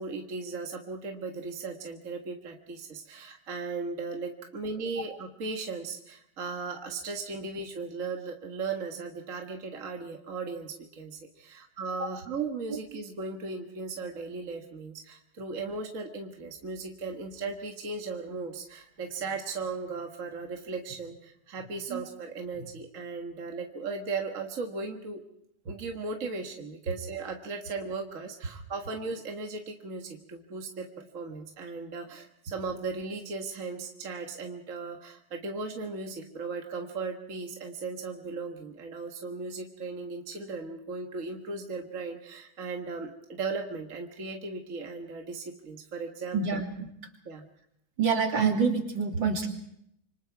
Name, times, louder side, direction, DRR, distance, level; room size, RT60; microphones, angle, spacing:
voice 1, 0.0-25.2 25.7-46.6 47.3-47.5, right 4 dB, 40° right, 3 dB, 1.9 m, -37 dB
voice 2, 46.3-46.9 48.0-49.5, right 5 dB, 65° right, 2 dB, 3.6 m, -27 dB
27.0 x 25.5 x 4.7 m, 0.76 s
omnidirectional pair, 2.2 m